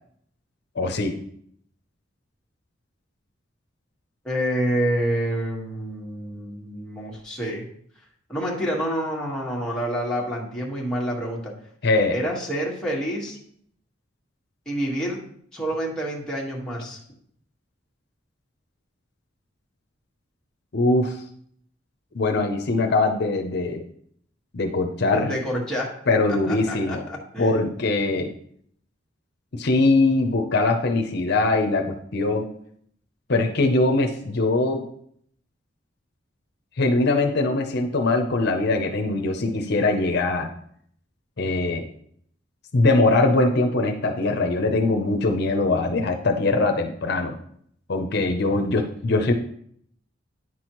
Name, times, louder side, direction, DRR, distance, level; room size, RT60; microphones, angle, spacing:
voice 1, 0.8-1.1 11.8-12.2 20.7-21.2 22.1-23.8 24.5-25.3 26.1-27.0 27.4-28.3 29.5-32.5 33.3-34.8 36.8-40.5 41.4-41.9 42.7-47.3 47.9-49.3, left 2 dB, 60° left, 4 dB, 0.7 m, -22 dB
voice 2, 4.2-7.7 8.3-11.5 12.1-13.4 14.6-15.2 15.5-17.0 25.1-25.9 26.3-27.7, equal, 5° left, -4 dB, 1.6 m, -28 dB
9.5 x 6.2 x 3.0 m, 0.65 s
head